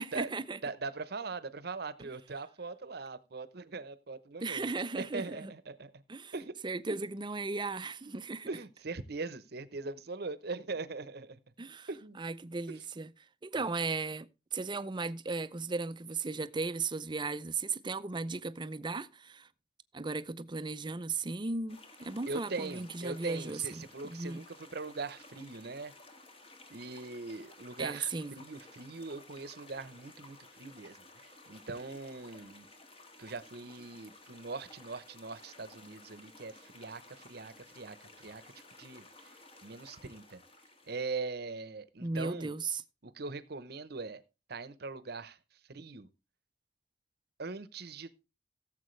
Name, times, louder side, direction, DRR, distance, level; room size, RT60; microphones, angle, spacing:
voice 1, 0.0-0.6 4.4-5.5 6.1-6.3 6.6-8.5 11.6-11.9 12.2-13.1 13.4-19.5 19.9-24.4 27.8-28.4 42.0-42.8, right 3 dB, 25° right, 0.6 m, -36 dB
voice 2, 0.6-4.7 5.0-6.0 6.3-6.5 6.9-7.0 8.5-11.4 11.9-12.2 12.7-12.8 13.6-13.7 22.3-25.9 26.7-32.7 33.2-38.4 38.8-39.1 39.6-40.4 40.9-42.5 43.0-44.2 44.5-45.4 45.7-46.1 47.4-48.2, right 3 dB, 60° right, 0.9 m, -41 dB
sound 1, 21.7-41.1, left 2 dB, 35° left, 1.7 m, -55 dB
16.5 x 7.5 x 3.2 m
head